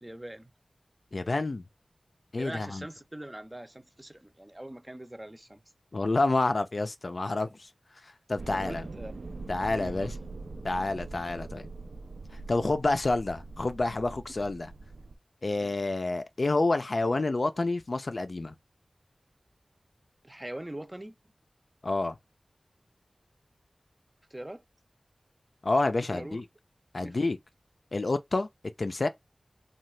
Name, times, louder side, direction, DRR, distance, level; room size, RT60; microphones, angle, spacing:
voice 1, 0.0-0.5 2.4-5.6 7.4-7.5 8.5-9.1 9.7-10.1 15.6-15.7 20.2-21.1 24.3-24.6 26.1-26.4 27.0-27.3, right 1 dB, 20° right, 0.5 m, -42 dB
voice 2, 1.1-1.6 2.3-2.9 5.9-7.7 8.3-8.9 9.5-10.1 10.6-11.7 12.5-14.7 15.4-18.5 21.8-22.2 25.6-26.4 26.9-27.4 27.9-28.5 28.8-29.1, left 2 dB, 60° left, 0.4 m, -28 dB
sound 1, 8.4-15.2, right 3 dB, 80° right, 0.3 m, -42 dB
2.8 x 2.3 x 3.2 m
cardioid pair, 45°, 0 cm